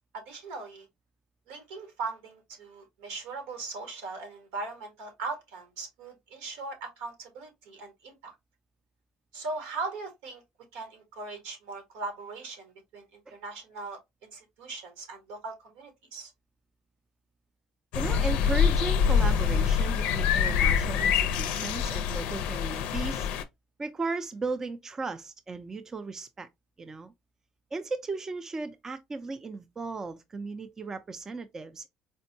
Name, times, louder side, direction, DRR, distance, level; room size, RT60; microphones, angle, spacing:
voice 1, 0.1-0.9 1.5-8.3 9.3-10.4 10.7-16.3, right 3 dB, 90° right, 1.4 m, -39 dB
sound 1, 17.9-23.4, left 7 dB, 80° left, 0.4 m, -25 dB
voice 2, 17.9-23.3 23.8-26.5 26.8-27.1 27.7-31.9, right 3 dB, 20° right, 0.4 m, -36 dB
4.3 x 2.1 x 2.6 m
cardioid pair, 110°, 2 cm